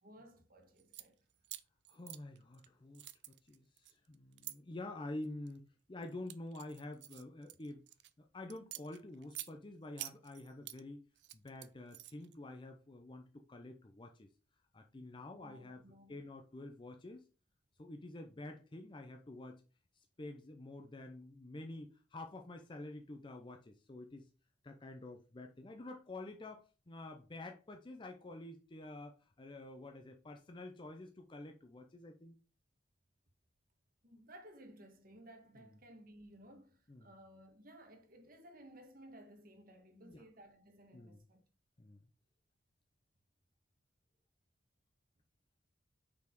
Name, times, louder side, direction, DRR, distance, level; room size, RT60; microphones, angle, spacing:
voice 1, 0.0-1.2 15.3-16.3 34.0-41.4, right 1 dB, 55° right, 1.4 m, -58 dB
sound 1, 0.8-1.1 1.4-2.7 2.9-4.6 5.2-5.6 6.0-8.1 8.5-9.5 10.0-10.8 11.2-12.3, right 15 dB, 70° right, 0.5 m, -48 dB
voice 2, 1.9-3.1 3.4-7.8 8.2-11.0 11.3-14.3 14.7-15.8 16.1-17.2 17.8-19.6 20.2-24.3 24.6-32.4 36.9-37.1 39.9-40.2 40.9-41.2 41.8-42.0, left 2 dB, 25° left, 0.6 m, -48 dB
5.7 x 4.2 x 4.5 m
head